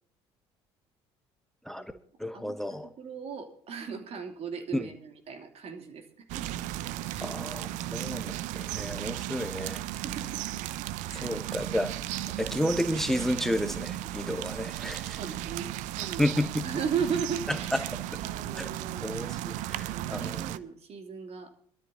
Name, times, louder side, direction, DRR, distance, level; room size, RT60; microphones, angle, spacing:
voice 1, 2.2-2.9 4.7-4.9 7.2-9.8 11.1-11.9 12.4-15.2 16.2-16.7 17.7-17.8 18.6-18.7 19.0-20.4, left 1 dB, ahead, 10 dB, 1.0 m, -31 dB
voice 2, 2.8-6.8 7.1-7.3 10.0-10.6 11.1-11.3 15.2-16.3 16.6-17.9 18.2-19.0 19.4-21.5, right 6 dB, 45° right, 5 dB, 2.8 m, -37 dB
sound 1, 6.3-20.6, right 14 dB, 60° right, 0.7 m, -35 dB
23.0 x 13.0 x 2.7 m, 0.63 s
hypercardioid pair, 65°, 14 cm